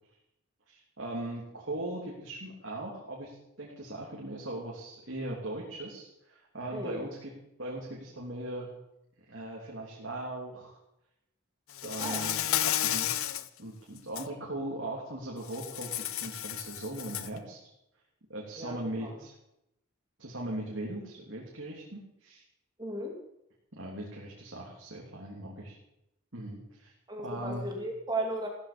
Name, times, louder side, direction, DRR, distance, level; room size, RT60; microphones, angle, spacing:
voice 1, 0.7-7.3 7.6-8.7 9.3-10.8 11.8-17.6 18.3-19.3 20.2-22.4 23.8-25.8 26.3-26.9 27.2-27.7, right 1 dB, 60° right, -3 dB, 3.2 m, -39 dB
voice 2, 6.7-7.1 12.0-12.3 18.6-19.2 22.8-23.2 27.1-28.5, right 1 dB, 20° right, 1 dB, 2.5 m, -35 dB
Insect, 11.7-13.5 14.0-14.3 15.5-17.4, left 11 dB, 75° left, 0.8 m, -32 dB
16.5 x 14.0 x 5.2 m, 0.84 s
head